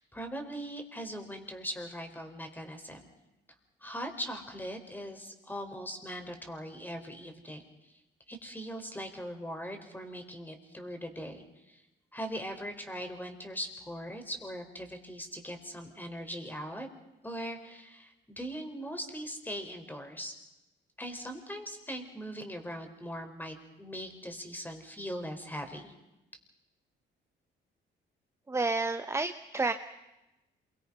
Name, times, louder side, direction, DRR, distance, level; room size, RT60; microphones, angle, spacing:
voice 1, 0.0-3.1 3.8-7.6 8.3-11.8 12.1-16.9 17.2-20.3 21.0-25.9, equal, 10° left, 5 dB, 4.7 m, -40 dB
voice 2, 28.5-29.7, right 3 dB, 15° right, 8 dB, 0.9 m, -30 dB
27.5 x 24.0 x 5.6 m, 0.96 s
cardioid pair, 90°, 20 cm